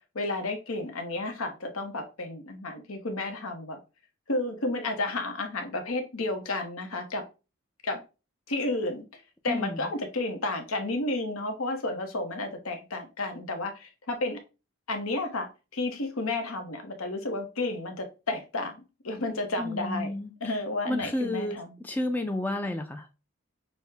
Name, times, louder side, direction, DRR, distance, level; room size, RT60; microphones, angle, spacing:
voice 1, 0.1-3.8 4.3-7.2 7.8-8.0 8.5-9.0 9.4-14.4 14.9-20.1 20.4-21.8, left 2 dB, 75° left, 0.9 m, -32 dB
voice 2, 9.5-9.8 19.6-20.3 20.9-21.6 21.8-23.1, left 1 dB, 10° left, 0.3 m, -31 dB
6.2 x 2.1 x 3.3 m
head